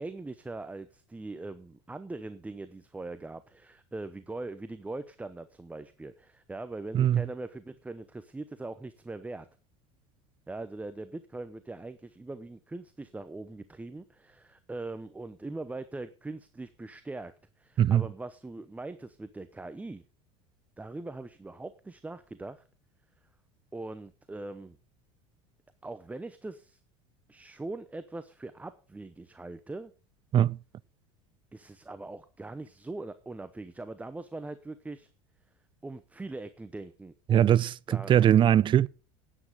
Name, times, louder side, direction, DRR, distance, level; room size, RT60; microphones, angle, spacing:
voice 1, 0.0-9.5 10.5-20.0 20.8-22.6 23.7-24.8 25.8-26.8 27.3-29.9 31.5-35.1 35.8-37.5 37.9-38.2, right 2 dB, 10° right, 0.8 m, -41 dB
voice 2, 6.9-7.2 17.8-18.1 30.3-30.6 37.3-38.9, right 10 dB, 30° right, 0.5 m, -21 dB
9.9 x 9.7 x 6.5 m
supercardioid pair, 110°, 16 cm